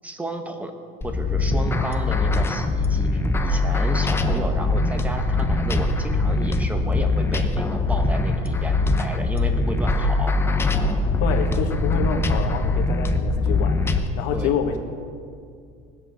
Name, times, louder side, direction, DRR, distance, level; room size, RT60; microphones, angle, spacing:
voice 1, 0.0-0.7 1.0-10.4 14.3-14.6, right 1 dB, 10° right, 5 dB, 1.3 m, -33 dB
sound 1, 1.0-14.1, left 2 dB, 15° left, 0.8 m, -22 dB
voice 2, 11.2-14.8, left 7 dB, 75° left, 3 dB, 1.8 m, -27 dB
19.0 x 8.0 x 6.7 m, 2.2 s
cardioid pair, 145°, 18 cm